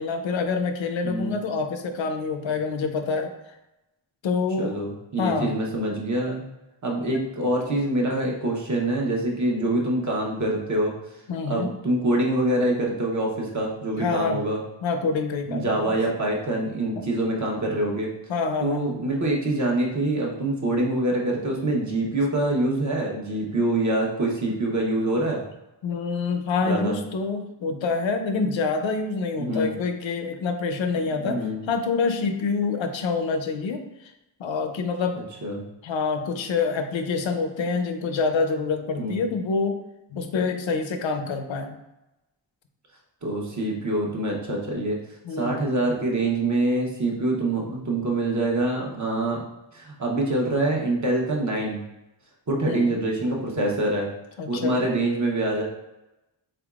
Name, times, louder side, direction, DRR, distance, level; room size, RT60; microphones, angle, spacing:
voice 1, 0.0-3.6 4.2-4.7 5.2-5.6 7.1-7.2 11.3-11.7 14.0-14.4 14.8-16.0 18.3-18.9 25.8-31.4 31.7-33.8 34.4-35.3 35.8-39.8 40.1-41.8 45.2-45.6 52.7-52.9 54.4-54.8, left 4 dB, 85° left, 6 dB, 0.6 m, -26 dB
voice 2, 4.6-6.4 6.8-10.9 11.5-14.6 15.5-18.1 18.6-25.4 26.6-27.0 29.4-29.7 31.2-31.6 35.4-35.6 39.0-39.3 43.2-45.0 45.4-49.4 49.7-51.8 52.5-54.1 54.5-55.6, right 1 dB, 40° right, -1 dB, 0.8 m, -25 dB
3.9 x 3.5 x 2.4 m, 0.96 s
wide cardioid pair, 125°, 45 cm